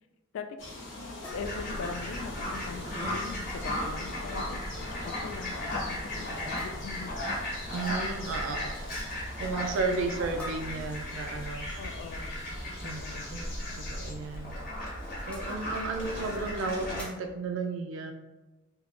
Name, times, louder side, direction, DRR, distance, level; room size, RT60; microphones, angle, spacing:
sound 1, 0.6-14.1, left 2 dB, 65° left, 0.8 m, -43 dB
sound 2, 1.2-2.6 3.9-4.2 4.5-4.8 5.1-5.2 6.6-7.2 10.4-11.6 13.6-13.7 14.3-14.4 15.2-15.6 17.0-17.4, left 1 dB, 5° left, 0.4 m, -47 dB
voice 1, 1.3-7.1 11.8-12.4 12.8-13.3, left 5 dB, 85° left, 7 dB, 0.3 m, -41 dB
Fowl, 1.3-17.0, left 1 dB, 45° left, 1.2 m, -36 dB
voice 2, 7.7-9.0 9.4-11.7 12.8-13.0 13.3-13.4 13.8-14.6 15.2-18.1, right 3 dB, 80° right, 4 dB, 0.3 m, -33 dB
3.6 x 2.8 x 2.4 m, 1.1 s
head